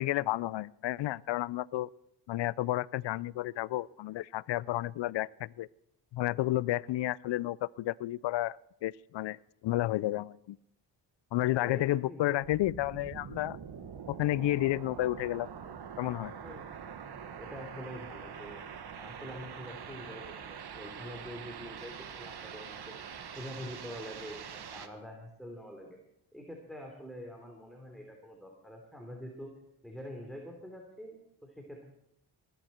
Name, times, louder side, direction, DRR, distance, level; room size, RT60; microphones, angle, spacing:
voice 1, 0.0-1.9 2.3-5.7 6.1-9.4 9.6-10.6 11.3-13.6 14.1-15.5 16.0-16.3, left 15 dB, 75° left, 23 dB, 0.5 m, -31 dB
voice 2, 11.6-12.4 16.4-16.7 17.4-18.6 19.0-22.9 23.3-26.0 26.3-29.5 29.8-31.2 31.4-31.9, equal, ahead, 1 dB, 3.2 m, -45 dB
sound 1, 12.4-24.9, right 7 dB, 60° right, 1.3 m, -44 dB
20.5 x 10.0 x 4.4 m, 0.79 s
cardioid pair, 55°, 44 cm